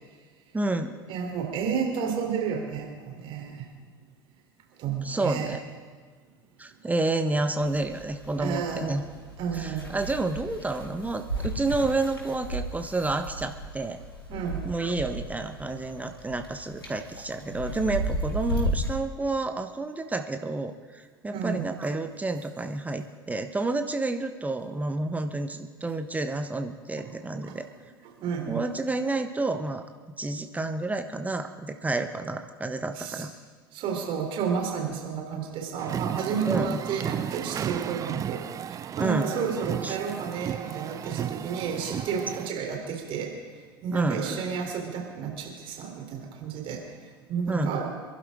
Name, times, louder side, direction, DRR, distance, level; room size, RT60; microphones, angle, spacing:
voice 1, 0.5-0.9 5.0-5.6 6.6-9.0 9.5-14.0 14.6-27.7 28.5-33.3 36.5-36.8 39.0-39.3 39.8-40.0 43.9-44.4 47.5-47.8, right 2 dB, 10° right, 7 dB, 1.2 m, -30 dB
voice 2, 1.1-3.7 4.8-5.5 8.4-8.9 9.4-10.0 14.3-14.6 21.3-21.6 27.5-27.6 28.2-28.7 33.0-33.2 33.7-47.9, right 6 dB, 45° right, 1 dB, 3.7 m, -31 dB
sound 1, 7.6-19.0, right 1 dB, 85° left, 3.2 m, -35 dB
sound 2, 35.8-42.5, right 9 dB, 25° right, 0.5 m, -34 dB
27.5 x 12.0 x 3.8 m, 1.5 s
figure-of-eight pair, 70°, 12 cm